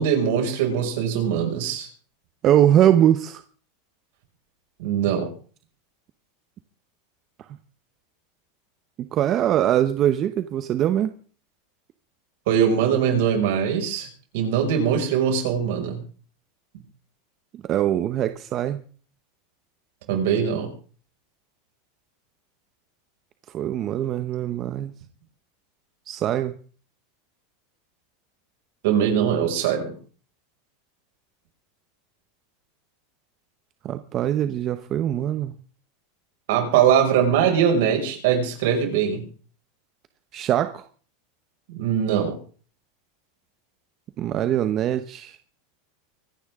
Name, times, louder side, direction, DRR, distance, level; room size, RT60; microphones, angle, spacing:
voice 1, 0.0-1.9 4.8-5.3 12.5-14.1 14.3-16.0 20.1-20.7 28.8-29.9 36.5-39.2 41.7-42.4, right 8 dB, 70° right, 3 dB, 5.7 m, -21 dB
voice 2, 2.4-3.4 7.4-7.5 9.1-11.1 17.5-18.8 23.5-24.9 26.1-26.6 33.8-35.6 40.3-40.9 44.2-45.4, right 11 dB, 35° right, 10 dB, 0.9 m, -22 dB
25.0 x 10.5 x 3.7 m, 0.41 s
supercardioid pair, 140°, 0 cm